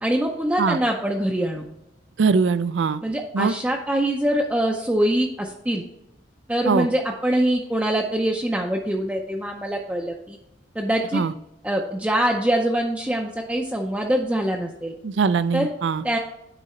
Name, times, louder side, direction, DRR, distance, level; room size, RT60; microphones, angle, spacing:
voice 1, 0.0-1.7 3.0-5.8 6.5-10.4 10.8-11.2 11.6-14.9 15.5-15.7 16.0-16.2, right 1 dB, 10° right, 0 dB, 0.5 m, -24 dB
voice 2, 2.2-3.0 3.3-3.5 6.7-6.9 11.1-11.3 15.0-16.0, right 5 dB, 70° right, 16 dB, 0.4 m, -21 dB
10.0 x 4.0 x 4.2 m, 0.87 s
head